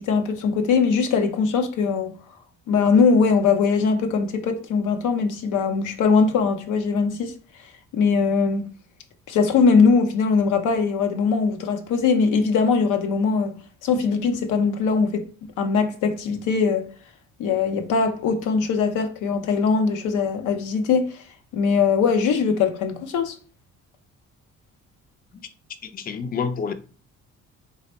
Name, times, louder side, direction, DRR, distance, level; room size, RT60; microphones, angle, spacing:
voice 1, 0.0-2.1 2.7-7.3 7.9-8.7 9.3-13.6 13.8-15.2 15.6-16.9 17.4-21.2 21.5-23.3, left 5 dB, 85° left, 0.6 m, -21 dB
voice 2, 25.8-26.7, left 6 dB, 30° left, 0.4 m, -28 dB
3.3 x 2.0 x 4.2 m
cardioid pair, 90°, 30 cm